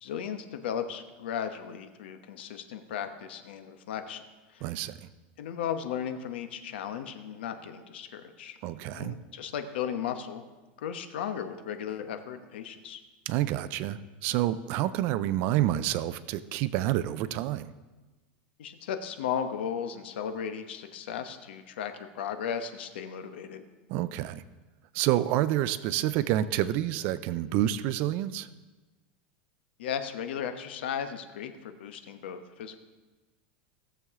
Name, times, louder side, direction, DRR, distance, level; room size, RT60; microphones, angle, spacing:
voice 1, 0.0-4.2 4.5-4.6 5.4-8.6 8.9-10.4 10.8-13.0 18.6-23.6 29.8-32.8, left 8 dB, 85° left, 8 dB, 1.0 m, -35 dB
voice 2, 4.6-5.1 8.6-9.2 13.3-17.7 23.9-24.4 24.9-28.5, right 13 dB, 35° right, 14 dB, 0.4 m, -28 dB
17.5 x 7.0 x 3.6 m, 1.2 s
supercardioid pair, 180°, 6 cm